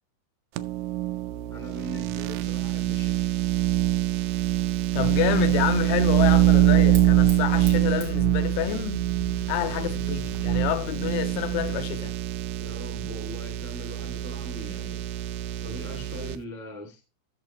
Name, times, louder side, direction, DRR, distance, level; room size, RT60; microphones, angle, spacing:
sound 1, 0.6-16.4, right 14 dB, 80° right, 2.7 m, -24 dB
voice 1, 1.5-3.2 9.6-9.9 12.6-15.0 15.6-17.0, equal, 15° right, 0.5 m, -41 dB
Fire, 4.3-11.7, right 5 dB, 65° right, 1.0 m, -50 dB
voice 2, 4.9-9.0 9.5-12.1, left 14 dB, 90° left, 3.2 m, -28 dB
sound 2, 6.1-11.7, left 1 dB, 70° left, 1.0 m, -44 dB
13.5 x 6.7 x 3.2 m
omnidirectional pair, 5.5 m